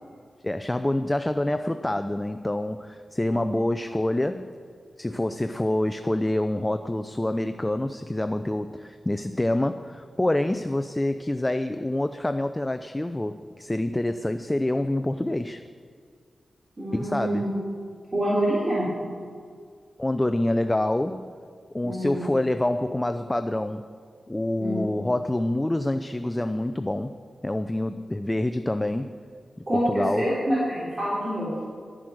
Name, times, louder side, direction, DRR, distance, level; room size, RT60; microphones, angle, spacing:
voice 1, 0.4-4.5 5.0-15.6 16.9-17.5 20.0-21.3 21.7-23.9 24.3-27.1 27.4-29.1 29.7-30.4, left 1 dB, 20° left, 10 dB, 0.5 m, -26 dB
voice 2, 16.8-17.5 18.1-18.9 21.8-22.2 24.6-24.8 29.7-31.6, right 1 dB, 40° right, -7 dB, 3.6 m, -26 dB
12.0 x 9.9 x 6.4 m, 2.1 s
cardioid pair, 60°, 0 cm